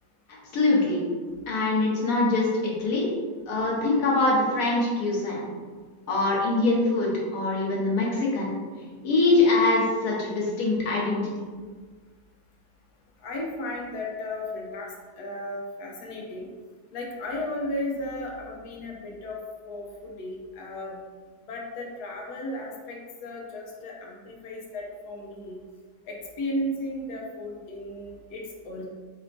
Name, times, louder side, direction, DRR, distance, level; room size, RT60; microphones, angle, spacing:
voice 1, 0.5-1.0 1.5-3.1 3.5-5.5 6.1-8.5 9.0-11.2, left 2 dB, 65° left, -3 dB, 1.4 m, -23 dB
voice 2, 13.2-16.5 16.9-19.4 19.6-21.0 21.5-25.6 26.1-28.9, left 1 dB, 85° left, -1 dB, 1.2 m, -35 dB
4.3 x 3.3 x 2.5 m, 1.5 s
omnidirectional pair, 1.7 m